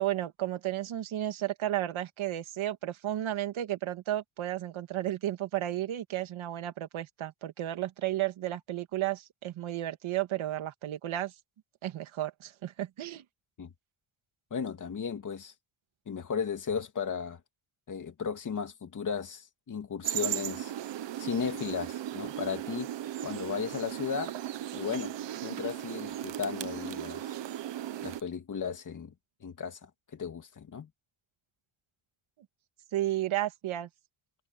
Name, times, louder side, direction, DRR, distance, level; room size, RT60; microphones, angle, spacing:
voice 1, 0.0-11.3 11.8-13.2 32.9-33.9, right 13 dB, 80° right, 2.1 m, -33 dB
voice 2, 14.5-15.5 16.1-17.4 17.9-20.7 21.2-22.9 23.2-24.3 24.7-25.1 25.4-27.3 28.0-29.1 29.4-30.9, left 6 dB, 40° left, 2.6 m, -35 dB
sound 1, 20.0-28.2, right 12 dB, 65° right, 1.1 m, -36 dB
wide cardioid pair, 175°, 47 cm